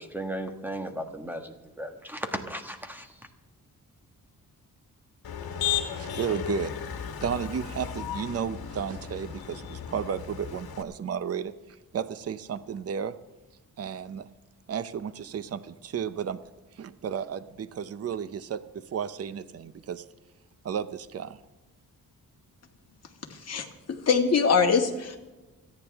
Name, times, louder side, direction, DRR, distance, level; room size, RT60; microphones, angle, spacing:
voice 1, 0.0-3.3, right 1 dB, 5° right, 5 dB, 1.5 m, -36 dB
Motor vehicle (road), 5.2-10.8, left 9 dB, 75° left, 1.7 m, -34 dB
voice 2, 6.0-6.7 7.2-11.5 11.9-13.1 13.8-14.3 14.7-16.4 16.8-20.0 20.6-21.4, right 7 dB, 40° right, 14 dB, 0.7 m, -33 dB
voice 3, 23.3-25.2, left 5 dB, 45° left, 2 dB, 2.0 m, -24 dB
29.0 x 9.9 x 3.5 m, 1.1 s
wide cardioid pair, 135°, 36 cm